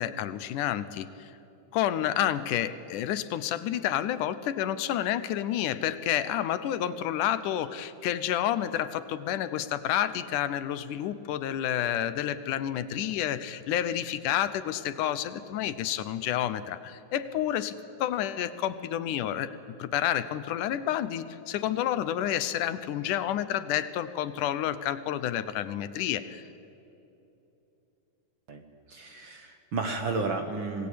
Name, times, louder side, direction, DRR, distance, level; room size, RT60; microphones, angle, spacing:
voice 1, 0.0-1.3 1.7-19.5 19.8-26.4, left 11 dB, 80° left, 13 dB, 2.4 m, -29 dB
voice 2, 28.9-30.9, right 3 dB, 50° right, 5 dB, 1.7 m, -32 dB
26.5 x 19.0 x 8.6 m, 3.0 s
omnidirectional pair, 3.6 m